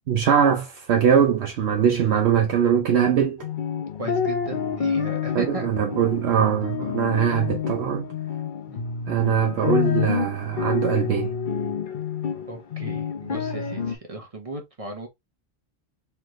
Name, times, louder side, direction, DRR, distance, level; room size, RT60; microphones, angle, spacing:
voice 1, 0.1-3.4 5.3-8.1 9.1-11.3, right 8 dB, 80° right, 1.0 m, -21 dB
sound 1, 3.4-14.0, left 7 dB, 50° left, 0.8 m, -28 dB
voice 2, 4.0-5.7 8.7-8.8 12.5-15.1, right 2 dB, 35° right, 1.1 m, -36 dB
3.9 x 3.3 x 3.0 m
omnidirectional pair, 1.1 m